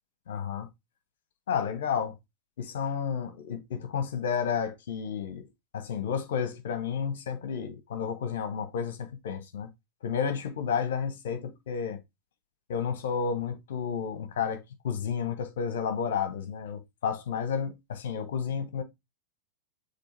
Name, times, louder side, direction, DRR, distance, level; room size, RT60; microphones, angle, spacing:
voice 1, 0.3-0.7 1.5-2.1 2.6-5.5 5.7-9.7 10.0-12.0 12.7-18.8, left 7 dB, 60° left, 1.5 m, -31 dB
7.0 x 3.4 x 4.6 m
figure-of-eight pair, 90°, 0 cm